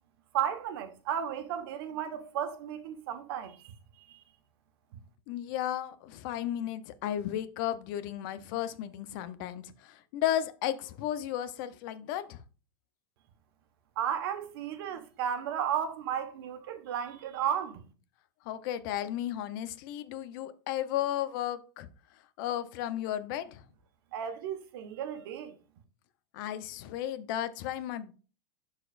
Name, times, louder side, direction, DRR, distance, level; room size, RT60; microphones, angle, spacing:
voice 1, 0.3-4.2 14.0-17.8 24.1-25.6, right 9 dB, 65° right, 1.3 m, -34 dB
voice 2, 5.3-12.4 18.5-21.9 22.4-23.6 26.3-28.1, left 11 dB, 55° left, 0.7 m, -34 dB
11.5 x 4.2 x 2.5 m
supercardioid pair, 140°, 13 cm